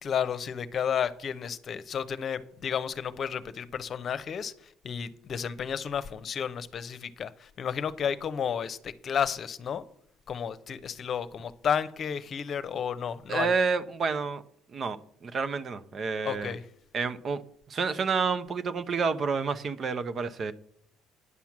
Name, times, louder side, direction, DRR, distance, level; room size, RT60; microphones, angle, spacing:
voice 1, 0.0-9.8 10.3-13.5 16.2-16.6, left 7 dB, 50° left, 0.8 m, -32 dB
voice 2, 13.3-14.4 14.7-16.5 16.9-17.4 17.7-20.5, right 5 dB, 45° right, 0.9 m, -29 dB
9.8 x 5.8 x 7.5 m
hypercardioid pair, 60°, 0 cm